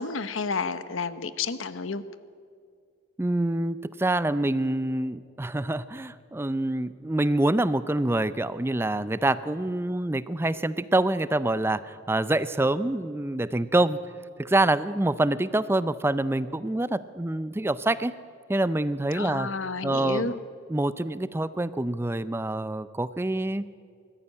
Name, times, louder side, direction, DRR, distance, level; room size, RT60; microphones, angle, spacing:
voice 1, 0.0-2.0 19.1-20.4, left 4 dB, 75° left, 13 dB, 0.9 m, -31 dB
voice 2, 3.2-14.0 14.4-18.1 18.5-19.5 19.8-20.3 20.7-23.7, right 1 dB, 10° right, 16 dB, 0.4 m, -26 dB
21.0 x 14.0 x 9.8 m, 2.3 s
head